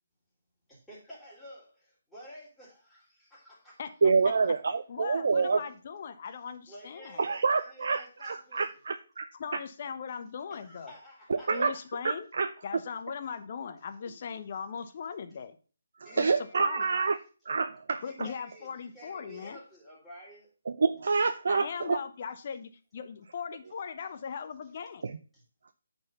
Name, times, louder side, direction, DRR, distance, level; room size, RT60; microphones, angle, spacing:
voice 1, 0.7-3.8 6.7-8.7 10.5-11.9 14.1-14.2 14.8-14.9 16.0-16.9 18.0-20.5 25.3-25.4, equal, 5° left, -8 dB, 3.7 m, -51 dB
voice 2, 4.0-5.6 7.2-9.3 11.3-11.7 12.0-12.5 16.2-17.2 17.5-18.0 20.7-22.0 25.0-25.1, right 4 dB, 55° right, 10 dB, 0.5 m, -27 dB
voice 3, 4.9-7.2 9.4-10.9 11.5-12.3 12.6-15.6 16.2-16.3 16.6-16.8 18.0-19.6 21.5-25.0, left 6 dB, 40° left, 9 dB, 1.0 m, -39 dB
9.5 x 4.5 x 5.4 m, 0.38 s
figure-of-eight pair, 145°, 0 cm